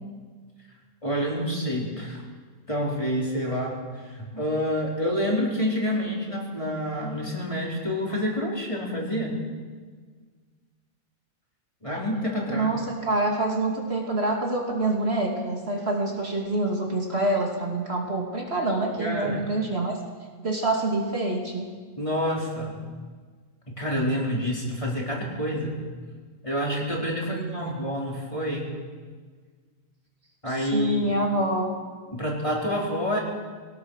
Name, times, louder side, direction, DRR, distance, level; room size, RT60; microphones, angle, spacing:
voice 1, 1.0-2.2 2.7-3.8 4.0-9.3 11.8-12.8 19.0-19.5 22.0-22.8 23.7-25.8 26.4-28.7 30.4-31.1 32.1-33.2, equal, 20° left, -3 dB, 4.2 m, -28 dB
voice 2, 12.5-20.0 20.4-21.7 27.3-27.7 30.6-31.7, right 2 dB, 50° right, 0 dB, 2.8 m, -26 dB
21.5 x 18.5 x 6.5 m, 1.5 s
omnidirectional pair, 1.4 m